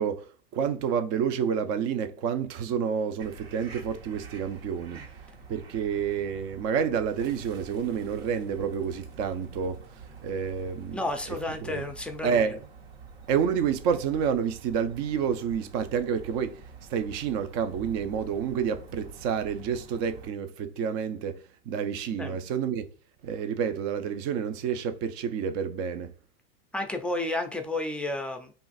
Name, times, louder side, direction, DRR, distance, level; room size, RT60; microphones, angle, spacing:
voice 1, 0.0-5.1 5.5-9.9 10.2-11.0 11.6-11.8 12.2-12.7 13.3-16.6 16.9-22.9 23.2-26.1, right 7 dB, 50° right, 0.6 m, -29 dB
sound 1, 3.2-20.3, right 5 dB, 80° right, 1.2 m, -47 dB
voice 2, 10.9-12.4 22.2-22.4 26.7-28.5, left 2 dB, 5° left, 0.4 m, -31 dB
2.5 x 2.4 x 4.0 m
supercardioid pair, 120°, 30 cm